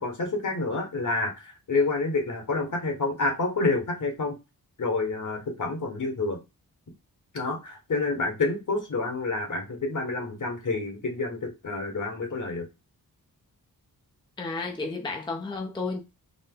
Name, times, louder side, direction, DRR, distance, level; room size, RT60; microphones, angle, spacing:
voice 1, 0.0-4.3 4.8-6.4 7.3-12.6, left 3 dB, 55° left, 1.4 m, -28 dB
voice 2, 14.4-16.0, left 3 dB, 10° left, 0.5 m, -32 dB
4.0 x 2.1 x 3.7 m
wide cardioid pair, 80°, 38 cm